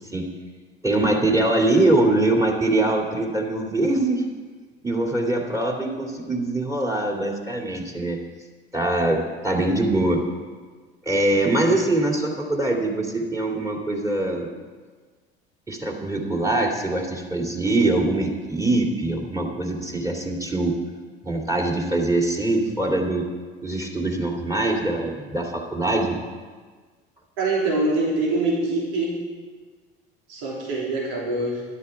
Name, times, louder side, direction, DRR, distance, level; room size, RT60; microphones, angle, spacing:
voice 1, 0.8-4.2 4.8-8.2 8.7-10.2 11.1-14.5 15.7-20.7 21.2-23.2 23.6-26.2, right 2 dB, 10° right, 0 dB, 2.7 m, -23 dB
voice 2, 27.4-29.1 30.3-31.6, right 2 dB, 65° right, -4 dB, 3.3 m, -24 dB
12.5 x 11.0 x 4.7 m, 1.5 s
figure-of-eight pair, 65°, 30 cm